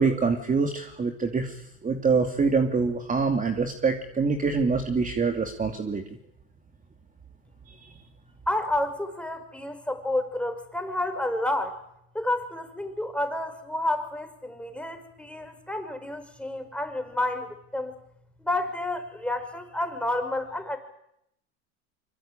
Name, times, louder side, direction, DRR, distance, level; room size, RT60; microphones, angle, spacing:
voice 1, 0.0-6.0 7.7-7.9, right 4 dB, 20° right, 5 dB, 2.6 m, -25 dB
voice 2, 8.5-11.8 12.1-17.9 18.4-20.8, left 1 dB, 5° left, 7 dB, 5.3 m, -30 dB
24.5 x 24.5 x 8.9 m, 0.78 s
supercardioid pair, 100°, 35 cm